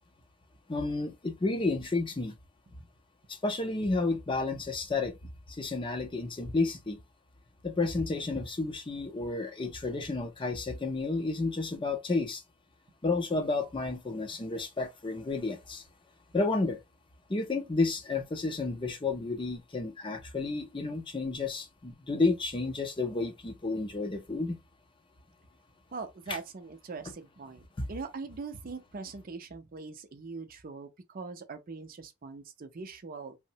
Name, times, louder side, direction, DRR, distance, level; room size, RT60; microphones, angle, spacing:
voice 1, 0.7-2.3 3.3-5.1 5.5-7.0 7.6-12.4 13.0-15.8 16.3-16.8 17.3-24.6 27.8-27.9, left 3 dB, 25° left, 0.5 m, -31 dB
voice 2, 25.9-27.6 27.9-33.4, right 4 dB, 45° right, 0.5 m, -42 dB
3.1 x 2.0 x 2.7 m
head